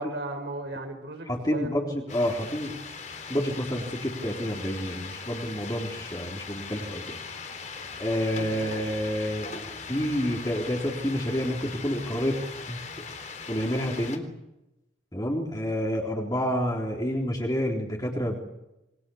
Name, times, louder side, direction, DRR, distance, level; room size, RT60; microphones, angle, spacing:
voice 1, 0.0-1.7 8.2-8.7, right 2 dB, 70° right, 4 dB, 4.8 m, -36 dB
voice 2, 1.3-2.7 3.3-7.2 8.0-9.5 9.9-12.4 12.7-12.8 13.5-14.2 15.1-18.4, equal, 20° left, -1 dB, 3.8 m, -29 dB
sound 1, 2.1-14.2, left 5 dB, 40° left, 3.7 m, -40 dB
28.0 x 23.5 x 7.2 m, 0.93 s
head